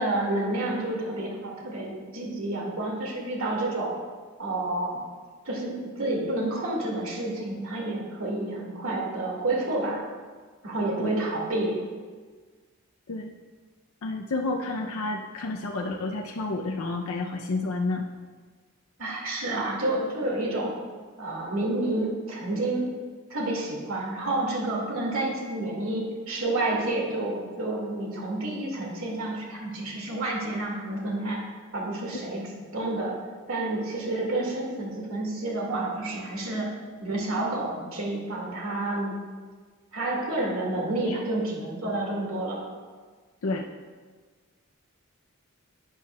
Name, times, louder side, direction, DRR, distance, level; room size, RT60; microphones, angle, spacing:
voice 1, 0.0-3.9 4.4-5.0 5.4-10.0 10.6-11.8 19.0-20.7 21.2-22.9 23.3-31.4 31.7-32.4 32.7-33.2 33.5-36.7 37.0-39.2 39.9-42.6, right 2 dB, 75° right, -2 dB, 2.1 m, -29 dB
voice 2, 14.0-18.1 41.0-41.2 43.4-43.6, left 3 dB, 80° left, 2 dB, 0.6 m, -30 dB
12.0 x 9.1 x 2.3 m, 1.5 s
head